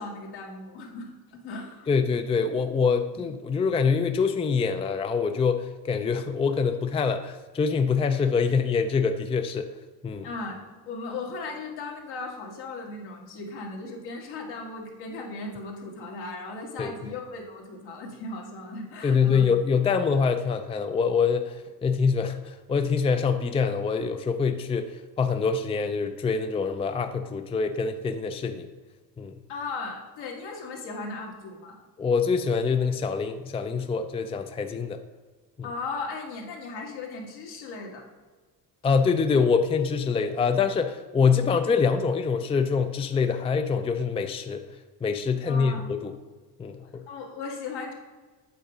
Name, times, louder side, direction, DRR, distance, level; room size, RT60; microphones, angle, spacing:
voice 1, 0.0-1.9 3.1-3.2 10.2-19.5 29.5-31.8 35.6-38.0 45.5-45.9 47.1-47.9, left 3 dB, 75° left, -1 dB, 1.8 m, -37 dB
voice 2, 1.9-9.7 10.0-10.3 16.8-16.9 19.0-28.7 29.2-29.3 32.0-35.0 38.8-44.6 45.0-46.1 46.6-47.0, left 5 dB, 15° left, 7 dB, 0.4 m, -25 dB
8.1 x 3.7 x 5.0 m, 1.3 s
supercardioid pair, 85°, 40 cm